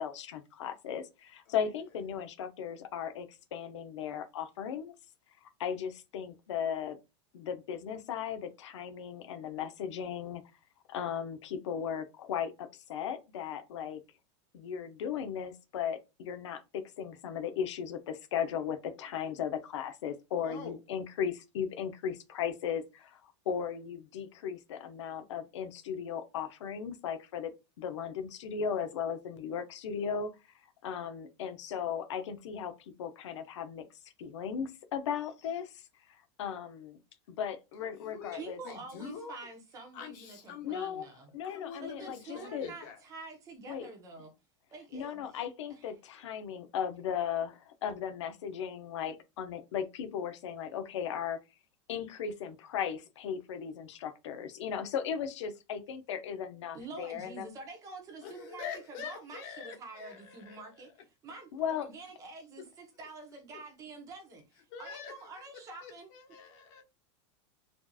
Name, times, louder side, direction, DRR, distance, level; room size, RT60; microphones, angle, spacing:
voice 1, 0.0-4.9 5.6-7.0 7.3-10.4 10.9-14.0 14.5-23.2 23.5-27.5 27.8-30.3 30.8-32.7 33.0-33.8 34.2-35.8 36.4-37.0 37.3-38.6 40.6-41.1 41.3-42.7 43.7-43.9 44.9-51.4 51.9-57.5 61.5-61.9, left 8 dB, 90° left, 0.7 m, -36 dB
voice 2, 20.4-20.8 37.9-39.5 39.9-40.9 41.4-43.0 58.2-60.9 62.6-62.7 64.7-65.3 65.8-66.8, left 7 dB, 45° left, 1.2 m, -45 dB
voice 3, 38.3-41.3 41.8-44.3 44.7-45.4 45.7-45.8 56.7-60.9 61.2-66.1, right 3 dB, 20° right, 0.9 m, -47 dB
4.3 x 2.9 x 2.3 m
supercardioid pair, 160°, 15 cm